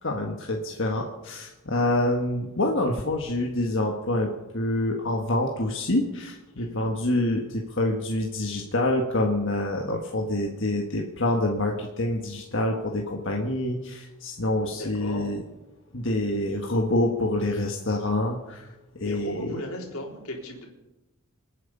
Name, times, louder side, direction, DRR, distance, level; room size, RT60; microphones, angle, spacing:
voice 1, 0.0-15.4 15.9-18.7 19.0-19.6, left 1 dB, 60° left, 1 dB, 1.6 m, -26 dB
voice 2, 6.6-6.9 14.7-15.3 19.0-20.7, left 1 dB, 80° left, 1 dB, 3.9 m, -36 dB
27.0 x 9.4 x 5.5 m, 1.0 s
head